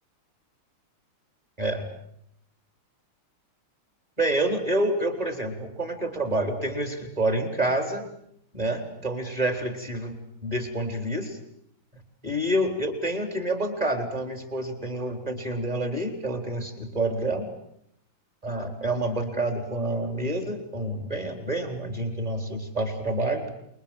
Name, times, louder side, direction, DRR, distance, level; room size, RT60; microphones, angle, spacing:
voice 1, 1.6-1.9 4.2-8.1 8.5-11.4 12.2-17.5 18.4-23.5, right 1 dB, 15° right, 7 dB, 4.0 m, -28 dB
28.0 x 23.0 x 8.9 m, 0.72 s
omnidirectional pair, 2.3 m